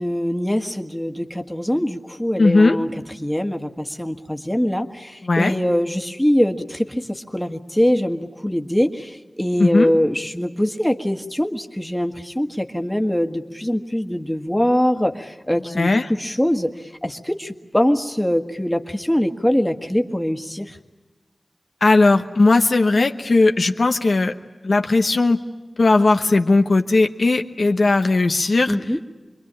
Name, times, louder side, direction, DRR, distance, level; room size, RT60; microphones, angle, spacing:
voice 1, 0.0-2.9 3.2-20.8 28.7-29.0, equal, 10° left, 5 dB, 1.6 m, -23 dB
voice 2, 2.4-2.8 5.2-5.5 9.6-9.9 15.8-16.1 21.8-24.3 24.6-25.4 25.8-28.7, left 3 dB, 75° left, 5 dB, 1.0 m, -17 dB
27.0 x 22.5 x 8.9 m, 1.2 s
wide cardioid pair, 60°, 0 cm